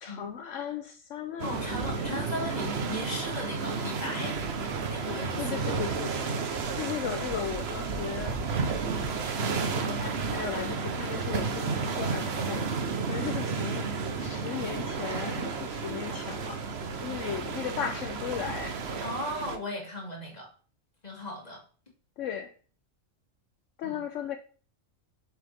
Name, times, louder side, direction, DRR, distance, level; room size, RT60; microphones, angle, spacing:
voice 1, 0.0-2.0 5.3-6.2 6.8-8.4 9.7-12.7 13.1-13.9 14.2-16.6 17.0-18.8 22.2-22.5 23.8-24.4, left 8 dB, 70° left, 1.1 m, -36 dB
voice 2, 1.4-4.4 4.9-5.4 19.0-20.5 21.0-21.6 23.8-24.0, left 1 dB, 30° left, 2.4 m, -37 dB
sound 1, 1.4-19.6, right 4 dB, 55° right, 1.2 m, -32 dB
7.8 x 7.6 x 3.5 m
omnidirectional pair, 1.4 m